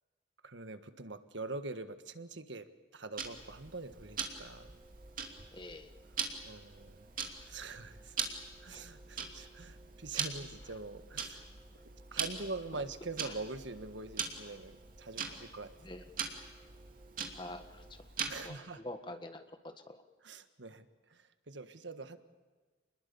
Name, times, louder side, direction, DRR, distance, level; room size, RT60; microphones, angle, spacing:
voice 1, 0.4-4.7 6.4-7.1 7.4-11.5 11.8-15.7 18.3-18.8 20.2-22.2, right 3 dB, 90° right, 10 dB, 1.6 m, -44 dB
Tick-tock, 3.2-18.6, right 6 dB, 45° right, 2.7 m, -42 dB
sound 1, 3.3-17.9, right 4 dB, 25° right, 4.7 m, -63 dB
voice 2, 5.5-5.9 8.7-8.9 13.2-13.4 14.5-14.6 15.8-16.0 17.3-18.0 18.4-20.0, left 1 dB, 25° left, 7 dB, 1.6 m, -46 dB
27.5 x 21.0 x 7.0 m, 1.4 s
head